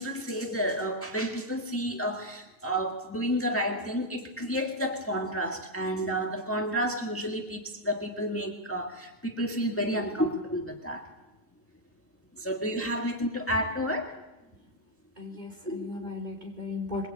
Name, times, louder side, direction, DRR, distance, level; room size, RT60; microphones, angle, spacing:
voice 1, 0.0-11.1 12.4-14.2 15.7-16.1, equal, 10° left, 3 dB, 1.8 m, -31 dB
voice 2, 15.2-17.1, left 3 dB, 35° right, 2 dB, 4.6 m, -37 dB
23.0 x 22.5 x 8.8 m, 1.0 s
omnidirectional pair, 1.3 m